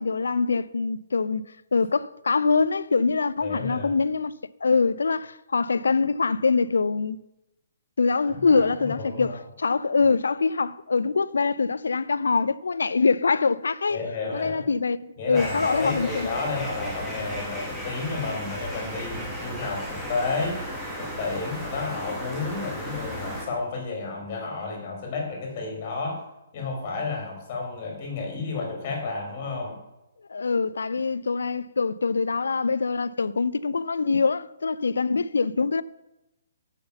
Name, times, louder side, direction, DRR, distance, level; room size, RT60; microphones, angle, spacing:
voice 1, 0.0-1.4 1.7-4.3 4.6-7.2 8.0-14.0 14.3-16.3 30.3-35.8, left 4 dB, 85° left, 0.4 m, -24 dB
voice 2, 3.4-3.9 8.3-9.4 13.9-14.7 15.2-20.6 21.0-26.2 26.5-29.8, left 4 dB, 35° left, 2.9 m, -31 dB
sound 1, 15.3-23.5, equal, 5° right, 1.7 m, -34 dB
7.0 x 5.8 x 6.7 m
hypercardioid pair, 150°, 0 cm